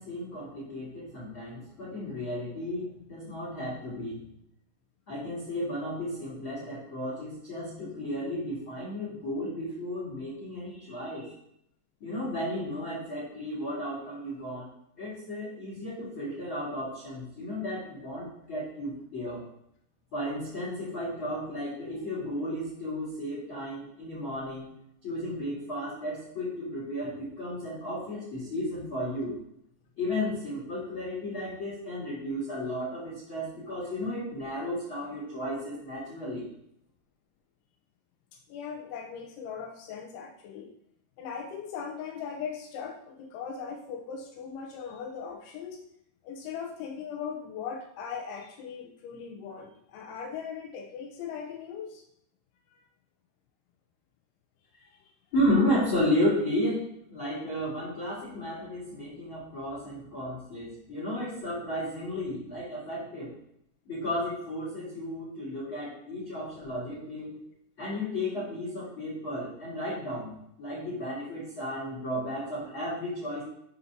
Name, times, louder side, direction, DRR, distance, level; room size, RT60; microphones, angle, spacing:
voice 1, 0.0-4.3 5.1-11.3 12.0-14.7 15.0-19.4 20.1-24.7 25.0-29.3 30.0-36.5 55.3-63.3 63.8-67.4 67.8-70.3 70.6-73.4, left 1 dB, 55° left, -7 dB, 1.4 m, -33 dB
voice 2, 38.5-40.7 41.2-45.8 46.2-52.0 54.9-55.1, left 6 dB, 80° left, 2 dB, 2.9 m, -39 dB
7.2 x 4.1 x 5.8 m, 0.75 s
omnidirectional pair, 5.8 m